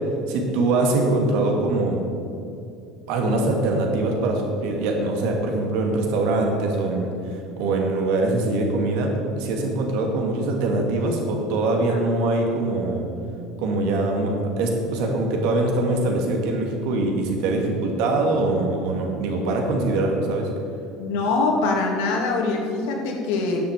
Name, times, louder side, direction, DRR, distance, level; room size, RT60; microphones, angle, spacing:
voice 1, 0.3-2.0 3.1-13.0 13.6-20.5, right 2 dB, 65° right, 1 dB, 2.4 m, -23 dB
voice 2, 21.0-23.6, left 3 dB, 75° left, 1 dB, 2.3 m, -23 dB
10.0 x 6.9 x 9.1 m, 2.5 s
cardioid pair, 170°, 0 cm